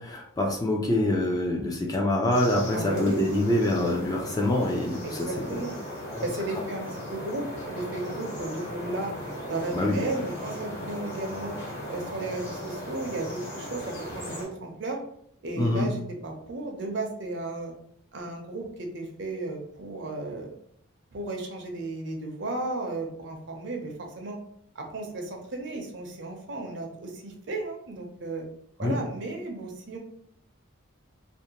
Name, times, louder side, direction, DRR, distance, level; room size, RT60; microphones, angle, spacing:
voice 1, 0.1-5.6 6.1-6.2 9.7-10.0 15.6-15.9 28.8-29.0, left 1 dB, 20° left, -1 dB, 0.3 m, -25 dB
sound 1, 2.3-14.5, equal, 55° left, 1.2 m, -37 dB
voice 2, 2.7-3.2 5.0-5.7 6.2-9.1 9.5-11.6 11.9-15.0 15.4-17.7 18.1-20.5 21.1-24.4 24.7-28.5 28.8-30.0, right 2 dB, 55° right, 2 dB, 0.5 m, -34 dB
2.5 x 2.1 x 2.8 m, 0.68 s
head